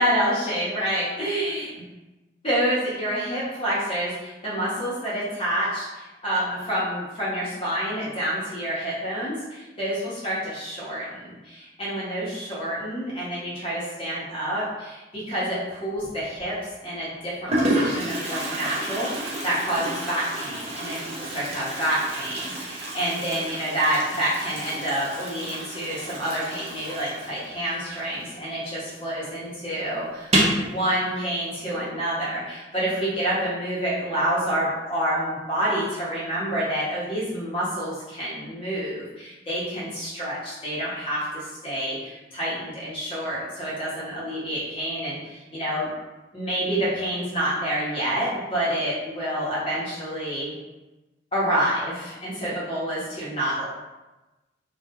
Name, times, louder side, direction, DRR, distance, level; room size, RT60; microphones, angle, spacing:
voice 1, 0.0-1.7 2.4-45.9 46.3-50.5 51.3-53.7, right 1 dB, 30° left, -8 dB, 0.9 m, -28 dB
Toilet flush, 16.0-16.4 17.1-17.2 17.5-28.8 29.0-29.1 29.4-29.5 30.2-30.7, right 1 dB, 35° right, 0.5 m, -30 dB
2.3 x 2.2 x 2.9 m, 1.1 s
head